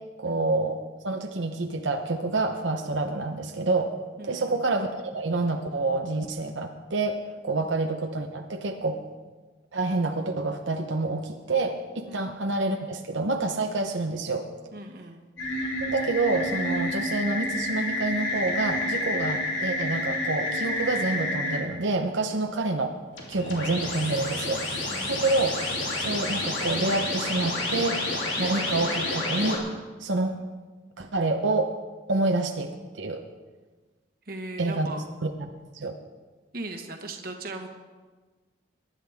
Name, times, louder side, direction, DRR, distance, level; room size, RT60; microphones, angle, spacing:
voice 1, 0.2-3.9 4.2-9.0 9.7-14.5 15.8-23.0 23.3-24.6 25.1-25.6 26.0-29.6 30.0-30.4 31.0-31.7 32.1-33.2 34.6-34.9 35.2-36.0, right 2 dB, 80° right, 3 dB, 0.9 m, -28 dB
voice 2, 4.2-4.6 7.6-7.7 12.1-12.2 14.7-15.3 22.3-22.4 24.9-25.4 32.1-32.3 34.3-35.0 36.5-37.7, right 2 dB, 50° right, 4 dB, 1.4 m, -39 dB
sound 1, 15.4-21.6 23.1-29.6, left 1 dB, 90° left, 3.2 m, -29 dB
23.0 x 11.0 x 3.6 m, 1.3 s
head